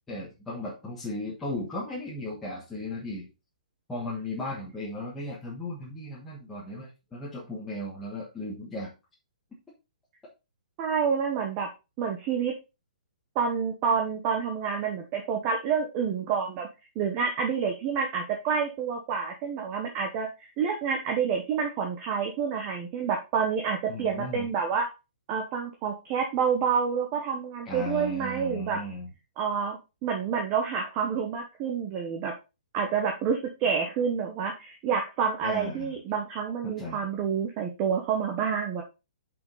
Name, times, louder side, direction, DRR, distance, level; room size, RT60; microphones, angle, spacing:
voice 1, 0.1-3.3 3.9-8.9 23.9-24.5 27.6-29.1 35.4-35.9 36.6-37.0, left 1 dB, 5° left, -8 dB, 1.5 m, -36 dB
voice 2, 10.8-11.7 12.0-12.5 13.3-16.7 16.9-24.9 25.3-28.8 29.4-32.3 32.7-38.8, right 6 dB, 20° right, 2 dB, 1.0 m, -28 dB
6.7 x 5.3 x 3.9 m, 0.28 s
hypercardioid pair, 175°, 4 cm